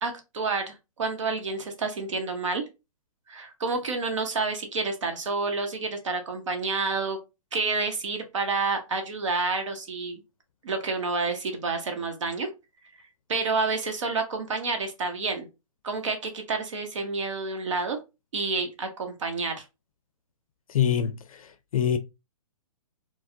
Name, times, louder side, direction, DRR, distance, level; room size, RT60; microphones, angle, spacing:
voice 1, 0.0-2.6 3.3-7.2 7.5-10.2 10.6-12.5 13.3-15.5 15.8-18.0 18.3-19.6, right 4 dB, 60° right, 0.9 m, -29 dB
voice 2, 20.7-22.0, left 9 dB, 75° left, 0.4 m, -25 dB
4.5 x 2.0 x 2.6 m
hypercardioid pair, 175°, 18 cm